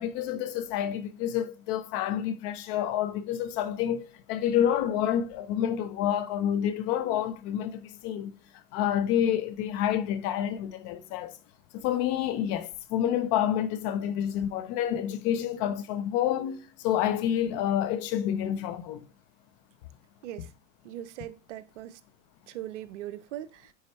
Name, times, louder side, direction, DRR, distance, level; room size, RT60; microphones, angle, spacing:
voice 1, 0.0-8.3 8.7-11.3 11.7-19.0, left 10 dB, 40° left, 0.8 m, -28 dB
voice 2, 20.8-22.0 22.5-23.7, right 13 dB, 65° right, 0.8 m, -40 dB
9.5 x 4.3 x 3.1 m
hypercardioid pair, 130°, 39 cm